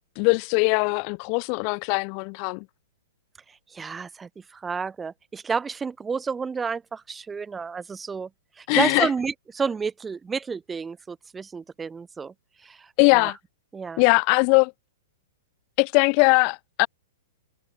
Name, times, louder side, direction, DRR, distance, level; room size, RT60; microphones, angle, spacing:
voice 1, 0.2-2.6 8.7-9.1 13.0-13.4 14.0-14.7 15.8-16.9, left 40 dB or more, 45° left, 0.6 m, -20 dB
voice 2, 3.5-8.3 8.6-12.3 12.6-13.3 13.7-14.0, right 5 dB, 15° right, 3.8 m, -31 dB
hypercardioid pair, 115°, 0 cm